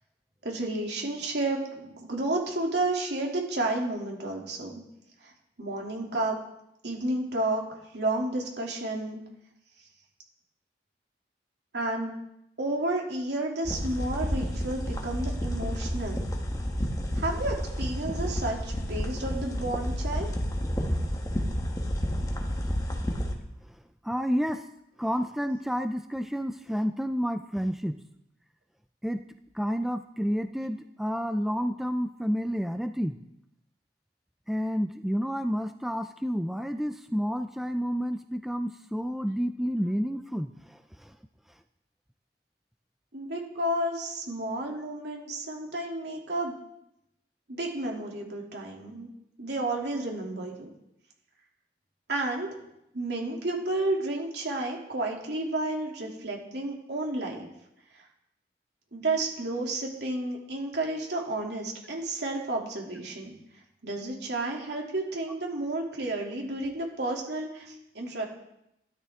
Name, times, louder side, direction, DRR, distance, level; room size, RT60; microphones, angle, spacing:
voice 1, 0.4-4.8 5.2-5.3 5.6-6.4 6.8-7.6 7.9-9.2 11.7-12.1 12.6-16.3 17.1-20.3 43.1-46.5 47.5-49.1 49.4-50.7 52.1-52.5 52.9-57.5 58.9-63.3 63.8-68.2, right 2 dB, 70° right, -1 dB, 2.8 m, -31 dB
sound 1, 13.6-23.3, equal, 20° left, 1.4 m, -30 dB
voice 2, 24.0-24.7 25.0-28.0 29.0-29.2 29.5-33.2 34.5-41.1, equal, ahead, 7 dB, 0.4 m, -30 dB
14.0 x 12.5 x 3.7 m, 0.83 s
head